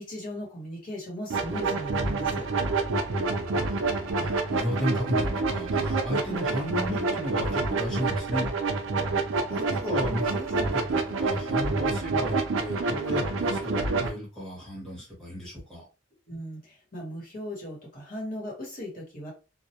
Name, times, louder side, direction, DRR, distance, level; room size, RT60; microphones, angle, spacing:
voice 1, 0.0-2.5 16.3-19.3, equal, 45° left, -3 dB, 1.1 m, -38 dB
sound 1, 1.3-14.1, right 3 dB, 70° right, 0.5 m, -27 dB
voice 2, 3.1-8.5 9.5-15.9, equal, 5° left, -6 dB, 1.0 m, -34 dB
2.2 x 2.1 x 2.8 m, 0.31 s
head